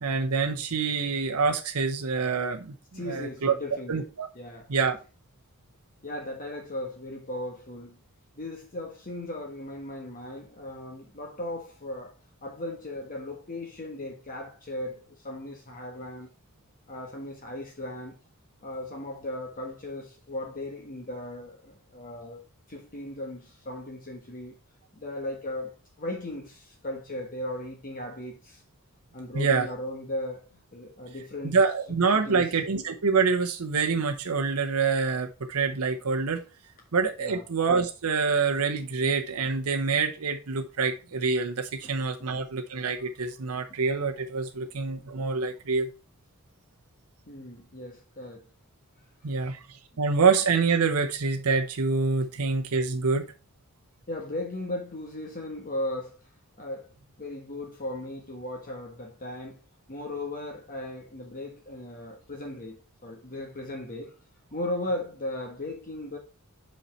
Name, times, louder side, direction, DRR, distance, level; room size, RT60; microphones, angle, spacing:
voice 1, 0.0-4.3 4.7-5.0 29.3-29.7 31.4-36.4 36.9-45.9 49.2-53.3, right 4 dB, 75° right, 0.8 m, -26 dB
voice 2, 2.9-4.0 4.3-4.7 6.0-8.0 8.3-16.3 16.9-18.2 18.6-22.4 22.7-24.5 24.9-28.6 29.1-31.6 32.3-32.5 37.2-37.4 41.8-42.0 44.6-44.7 47.3-48.4 54.1-56.2 56.6-56.9 57.2-59.6 59.9-64.1 64.5-66.2, left 1 dB, 40° left, 1.3 m, -37 dB
5.6 x 5.5 x 4.2 m
head